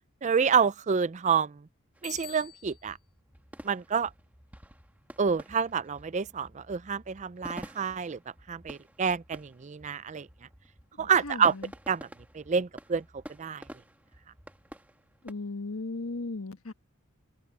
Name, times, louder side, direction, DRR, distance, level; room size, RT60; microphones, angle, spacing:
voice 1, 0.2-1.5 2.0-3.0 3.6-4.1 5.2-8.2 8.5-10.3 11.0-11.5 11.9-12.1 12.3-13.0 13.4-13.6, right 6 dB, 35° right, 0.4 m, -28 dB
sound 1, 1.9-15.3, equal, 5° right, 1.7 m, -50 dB
Bicycle bell, 2.0-3.0, left 14 dB, 40° left, 1.7 m, -46 dB
voice 2, 11.0-11.7 15.2-16.7, left 3 dB, 75° left, 1.4 m, -37 dB
head